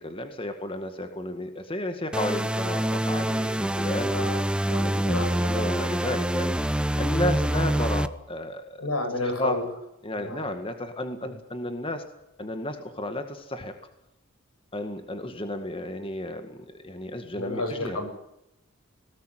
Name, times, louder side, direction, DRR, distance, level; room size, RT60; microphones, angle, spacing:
voice 1, 0.0-4.1 4.7-6.6 7.0-8.8 9.2-9.6 10.0-12.0 12.4-13.7 14.7-18.0, left 1 dB, 25° left, 7 dB, 2.0 m, -33 dB
sound 1, 2.1-8.1, right 1 dB, 5° right, 0.7 m, -26 dB
voice 2, 4.7-5.6 8.8-9.7 10.2-10.4 11.2-11.3 17.4-18.1, left 2 dB, 85° left, 6 dB, 7.5 m, -31 dB
20.5 x 18.5 x 9.3 m, 0.84 s
head